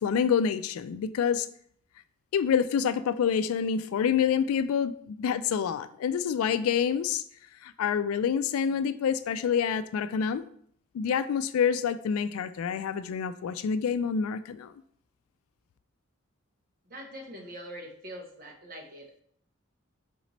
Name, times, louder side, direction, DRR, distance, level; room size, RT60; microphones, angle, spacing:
voice 1, 0.0-1.5 2.3-7.2 7.6-10.4 10.9-14.7, left 7 dB, 85° left, 13 dB, 0.3 m, -27 dB
voice 2, 16.9-19.2, equal, 45° right, 0 dB, 0.9 m, -43 dB
4.1 x 3.0 x 4.0 m, 0.63 s
head